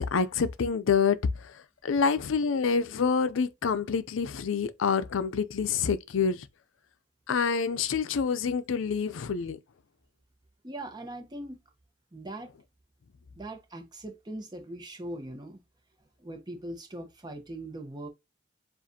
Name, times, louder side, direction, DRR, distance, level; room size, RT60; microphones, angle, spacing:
voice 1, 0.0-6.5 7.3-9.6, left 5 dB, 75° left, 0.5 m, -27 dB
voice 2, 10.6-11.6 12.1-12.5 13.4-15.6 16.2-18.1, right 1 dB, 20° right, 0.9 m, -40 dB
7.3 x 2.4 x 2.7 m
head